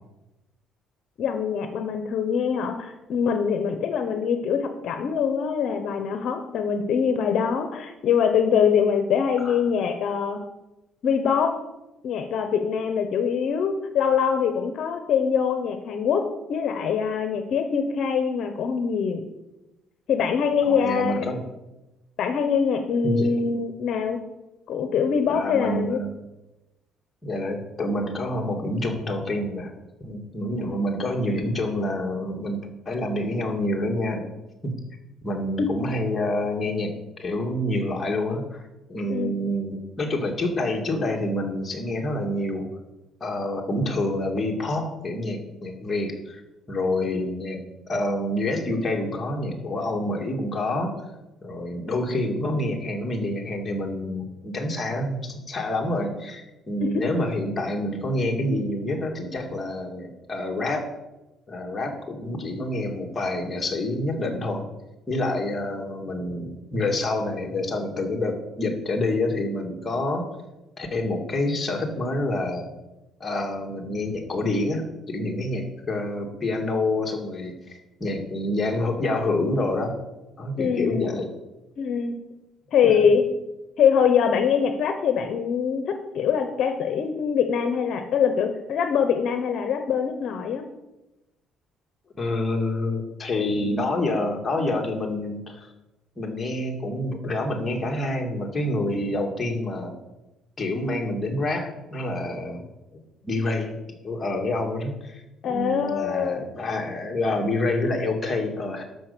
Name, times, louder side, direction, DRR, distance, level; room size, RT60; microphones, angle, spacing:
voice 1, 1.2-10.4 11.0-11.5 12.0-19.2 20.1-21.3 22.2-24.2 24.7-26.0 35.6-35.7 39.1-39.4 56.8-57.0 80.6-81.2 81.8-82.2 82.7-83.2 83.8-90.6 105.4-106.5, left 7 dB, 55° left, 7 dB, 0.9 m, -23 dB
voice 2, 20.6-21.4 23.0-23.4 25.3-26.2 27.2-29.7 30.0-34.4 34.6-34.7 35.2-38.6 38.9-42.7 43.2-46.4 46.7-47.6 47.9-51.0 51.4-60.8 61.5-64.7 65.1-70.3 70.8-72.6 73.2-80.0 80.4-81.3 82.8-83.1 92.2-95.7 96.2-100.0 100.6-102.6 103.2-103.8 104.0-108.8, left 1 dB, 20° left, 1 dB, 1.9 m, -27 dB
12.0 x 5.3 x 6.7 m, 0.99 s
cardioid pair, 140°, 0 cm